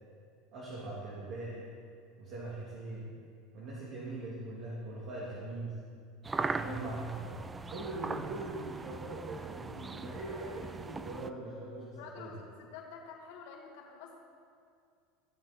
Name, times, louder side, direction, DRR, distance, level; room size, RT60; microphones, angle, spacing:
voice 1, 0.5-1.6 2.2-3.1 3.5-5.7 6.5-7.4 7.7-12.4, right 2 dB, 55° right, -6 dB, 2.7 m, -41 dB
sound 1, 6.2-11.3, right 4 dB, 20° right, 0.4 m, -40 dB
voice 2, 6.4-6.8 12.0-14.2, left 5 dB, 75° left, -1 dB, 2.3 m, -48 dB
15.5 x 7.3 x 4.4 m, 2.3 s
supercardioid pair, 100°, 0 cm